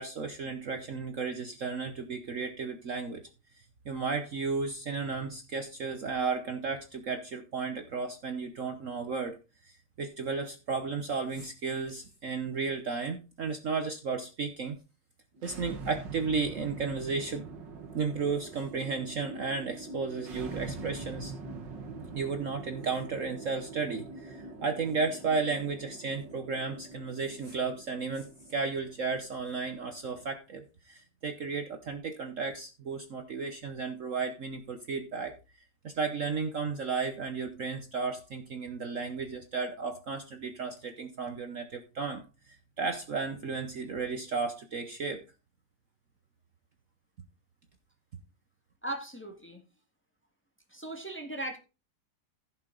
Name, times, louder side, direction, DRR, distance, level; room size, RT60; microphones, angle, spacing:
voice 1, 0.0-3.2 3.8-9.4 9.6-14.8 15.4-17.5 17.9-21.3 22.2-35.3 35.8-45.2, right 4 dB, 50° right, 6 dB, 1.2 m, -34 dB
sound 1, 15.3-30.3, right 3 dB, 80° right, 2.2 m, -44 dB
voice 2, 48.8-49.6 50.7-51.6, right 1 dB, 5° left, 3 dB, 1.7 m, -38 dB
15.5 x 6.0 x 3.9 m, 0.30 s
omnidirectional pair, 1.9 m